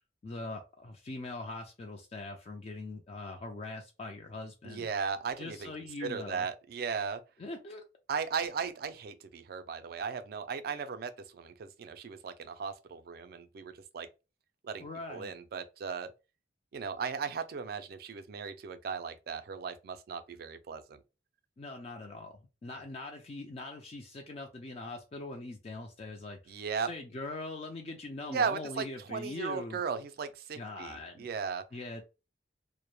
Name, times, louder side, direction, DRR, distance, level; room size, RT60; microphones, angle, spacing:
voice 1, 0.2-4.9 5.4-6.5 7.4-7.8 14.8-15.3 21.6-26.5 26.9-29.8 30.6-31.3 31.7-32.0, left 2 dB, 35° left, 0.4 m, -42 dB
voice 2, 4.6-5.7 6.0-7.2 8.1-14.1 14.6-16.1 16.7-21.0 26.5-26.9 28.3-31.6, right 6 dB, 60° right, 0.3 m, -36 dB
2.2 x 2.0 x 2.9 m
head